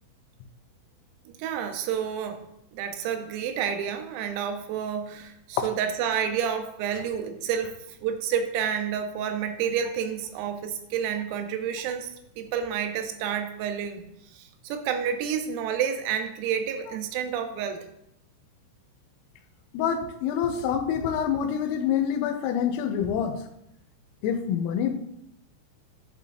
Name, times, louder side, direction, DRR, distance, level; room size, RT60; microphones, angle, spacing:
voice 1, 1.3-2.4 2.7-7.7 8.0-14.0 14.4-17.9, right 8 dB, 90° right, 6 dB, 3.6 m, -29 dB
voice 2, 19.7-23.4 24.2-24.9, left 8 dB, 90° left, 6 dB, 3.3 m, -26 dB
9.6 x 9.2 x 2.6 m, 0.79 s
omnidirectional pair, 5.9 m